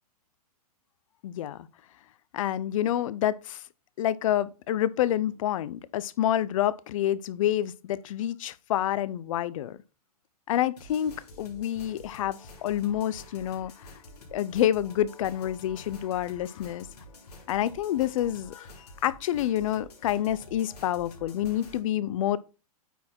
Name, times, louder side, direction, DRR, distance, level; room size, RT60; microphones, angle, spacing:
voice 1, 1.2-1.6 2.3-3.6 4.0-9.8 10.5-13.7 14.3-16.9 17.5-18.7 19.0-22.4, left 12 dB, 60° left, 0.6 m, -28 dB
sound 1, 10.8-21.8, left 2 dB, 85° left, 3.2 m, -49 dB
9.3 x 4.2 x 4.4 m
hypercardioid pair, 140°, 20 cm